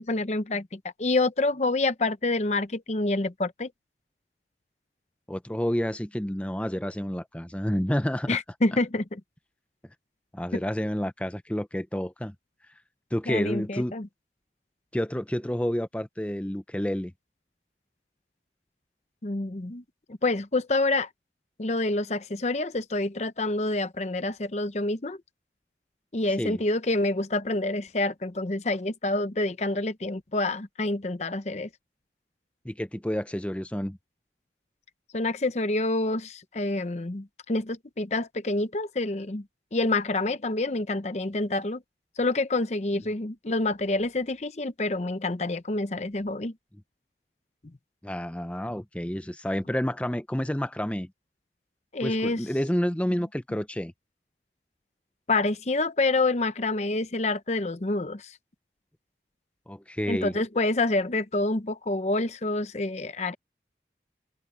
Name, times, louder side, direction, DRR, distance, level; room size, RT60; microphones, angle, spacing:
voice 1, 0.0-3.7 8.3-9.2 10.5-10.6 13.3-14.1 19.2-19.8 20.2-21.1 21.6-25.2 26.1-31.7 35.1-39.4 39.7-41.8 42.2-46.5 51.9-52.4 55.3-58.3 60.1-63.3, left 2 dB, 40° left, 0.7 m, -27 dB
voice 2, 5.3-8.4 10.3-12.3 13.1-13.9 14.9-17.1 26.4-26.6 32.6-34.0 43.0-43.1 48.0-51.1 52.0-53.9 59.7-60.4, equal, 5° left, 0.7 m, -29 dB
head